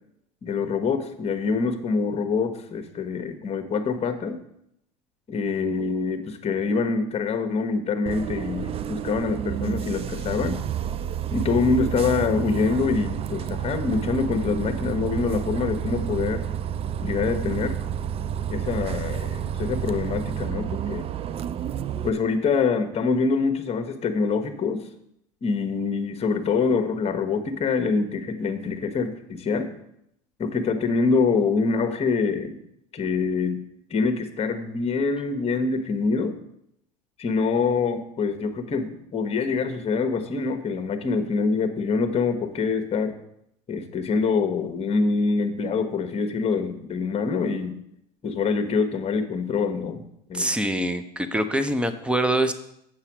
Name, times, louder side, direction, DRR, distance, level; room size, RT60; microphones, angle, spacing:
voice 1, 0.4-4.4 5.3-10.6 11.3-16.4 17.0-17.8 18.5-21.1 22.0-24.9 25.4-29.7 30.4-32.6 32.9-33.6 33.9-36.4 37.2-43.2 43.7-47.8 48.2-50.0 50.3-50.5, left 4 dB, 30° left, 8 dB, 1.2 m, -25 dB
Bus, 8.1-22.1, right 9 dB, 30° right, 0.4 m, -30 dB
voice 2, 50.3-52.5, right 1 dB, 5° right, 11 dB, 0.8 m, -24 dB
8.0 x 5.6 x 6.1 m, 0.76 s
hypercardioid pair, 80°, 21 cm